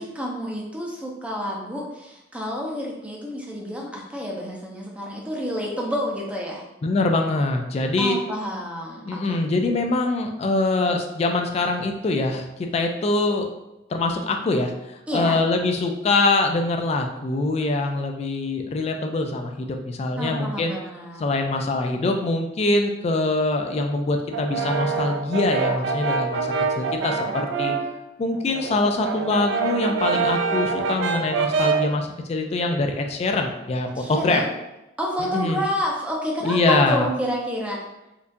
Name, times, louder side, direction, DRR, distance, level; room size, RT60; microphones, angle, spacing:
voice 1, 0.0-6.6 8.0-9.4 15.1-15.4 20.2-21.2 34.0-34.5 35.0-37.8, equal, 5° right, -2 dB, 0.6 m, -29 dB
voice 2, 6.8-8.2 9.1-13.5 13.9-20.7 21.2-27.7 28.2-34.4 35.2-35.6 36.4-37.1, left 2 dB, 35° left, 4 dB, 0.3 m, -24 dB
Brass instrument, 24.3-28.0 28.3-32.0, right 5 dB, 85° right, 0.4 m, -25 dB
4.4 x 2.4 x 2.6 m, 0.95 s
head